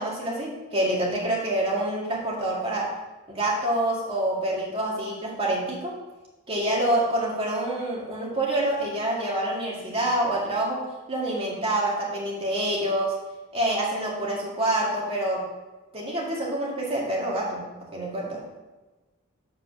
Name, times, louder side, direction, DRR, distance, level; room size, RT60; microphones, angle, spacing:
voice 1, 0.0-2.9 3.3-5.9 6.5-10.8 11.1-13.1 13.5-15.4 15.9-18.4, right 1 dB, 25° right, -5 dB, 2.2 m, -27 dB
7.8 x 4.7 x 6.2 m, 1.2 s
head